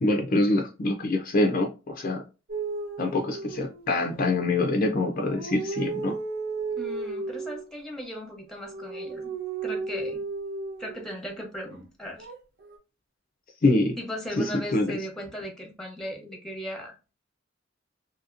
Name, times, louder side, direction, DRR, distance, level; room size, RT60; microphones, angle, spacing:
voice 1, 0.0-2.2 3.0-6.2 13.6-14.0 14.4-14.9, left 2 dB, 45° left, 0.5 m, -25 dB
sound 1, 2.5-4.2 5.0-7.6 8.5-11.1 12.2-12.8, right 4 dB, 50° right, 1.1 m, -34 dB
voice 2, 6.8-9.3 9.6-10.2 10.8-12.3 14.0-17.1, equal, 5° left, 0.9 m, -37 dB
2.8 x 2.8 x 2.4 m
head